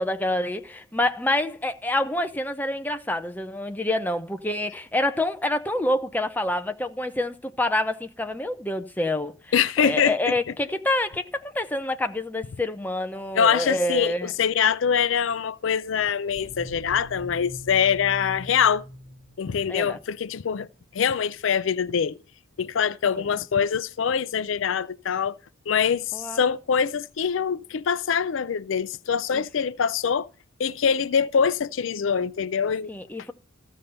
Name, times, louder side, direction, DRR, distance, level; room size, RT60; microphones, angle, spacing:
voice 1, 0.0-9.3 9.8-14.3 19.7-20.0 26.1-26.5 29.3-29.4 32.9-33.3, left 1 dB, 10° left, 0.6 m, -27 dB
voice 2, 9.5-10.3 13.3-18.8 19.4-20.7 20.9-22.2 22.6-25.4 25.7-30.3 30.6-32.9, left 7 dB, 70° left, 0.4 m, -24 dB
sound 1, 16.3-21.2, equal, 45° right, 2.8 m, -42 dB
14.0 x 5.5 x 6.6 m
head